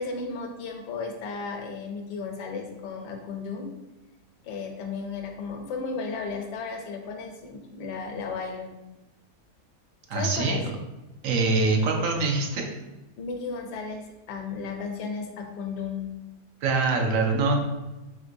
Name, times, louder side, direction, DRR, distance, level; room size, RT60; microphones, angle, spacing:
voice 1, 0.0-3.7 4.4-8.7 10.1-10.6 13.2-16.1, left 4 dB, 75° left, 3 dB, 1.2 m, -34 dB
voice 2, 10.1-10.6 11.2-12.7 16.6-17.6, right 3 dB, 65° right, 2 dB, 0.8 m, -24 dB
3.8 x 3.7 x 2.6 m, 1.1 s
omnidirectional pair, 1.8 m